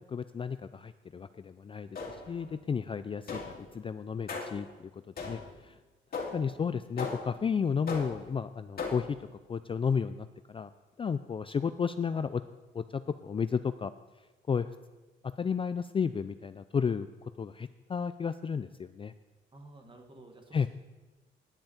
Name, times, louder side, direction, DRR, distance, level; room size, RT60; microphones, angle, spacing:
voice 1, 0.0-5.7 6.3-9.2 9.5-10.7 11.0-12.4 12.7-13.9 14.5-14.7 15.2-17.1 17.4-19.1 20.5-20.7, left 6 dB, 25° left, 12 dB, 0.4 m, -33 dB
sound 1, 1.9-2.5 3.3-3.7 4.3-4.7 5.2-5.6 6.1-6.5 7.0-7.4 7.9-8.3 8.8-9.2, left 4 dB, 50° left, 2.4 m, -38 dB
voice 2, 19.5-20.7, right 2 dB, 25° right, 4 dB, 1.8 m, -52 dB
10.5 x 5.5 x 8.7 m, 1.1 s
cardioid pair, 90°, 20 cm